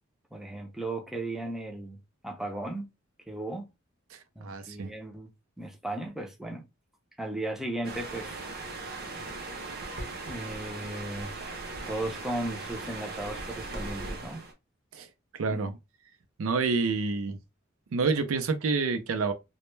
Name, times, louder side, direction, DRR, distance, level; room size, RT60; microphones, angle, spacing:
voice 1, 0.3-2.0 2.2-2.9 3.3-3.7 4.4-5.3 5.6-6.7 7.2-8.3 10.3-11.4 11.9-14.4 15.5-15.6, right 1 dB, ahead, 0.4 m, -36 dB
voice 2, 4.1-4.9 14.9-15.1 15.3-15.7 16.4-17.4 17.9-19.3, right 4 dB, 85° right, 0.4 m, -28 dB
sound 1, 7.8-14.5, right 3 dB, 50° right, 0.7 m, -38 dB
2.1 x 2.1 x 3.1 m
head